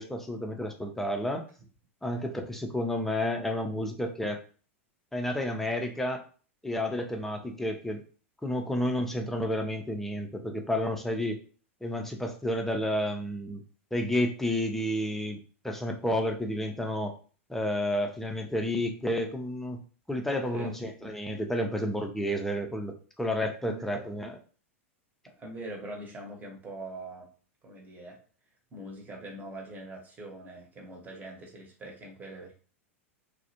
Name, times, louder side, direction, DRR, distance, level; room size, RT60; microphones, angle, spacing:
voice 1, 0.0-1.5 2.0-4.4 5.1-6.2 6.6-8.0 8.4-11.4 11.8-13.6 13.9-17.1 17.5-19.8 20.1-24.4, left 1 dB, 5° left, 3 dB, 0.5 m, -31 dB
voice 2, 23.6-24.2 25.3-27.3 27.6-28.2 28.7-32.5, right 2 dB, 25° right, 0 dB, 0.9 m, -43 dB
2.4 x 2.0 x 2.8 m, 0.39 s
hypercardioid pair, 100°, 7 cm